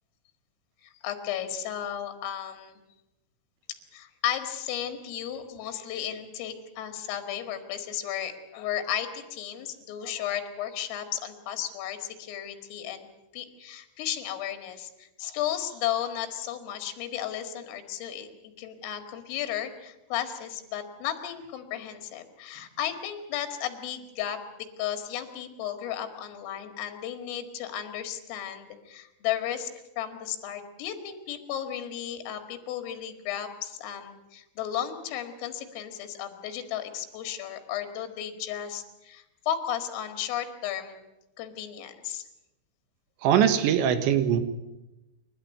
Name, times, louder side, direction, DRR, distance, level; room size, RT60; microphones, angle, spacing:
voice 1, 0.8-2.8 3.7-13.1 13.3-29.7 30.0-41.0 41.4-42.2, left 10 dB, 80° left, 7 dB, 4.5 m, -34 dB
voice 2, 43.2-44.4, right 9 dB, 70° right, 10 dB, 3.6 m, -22 dB
28.5 x 13.0 x 9.4 m, 0.97 s
omnidirectional pair, 5.8 m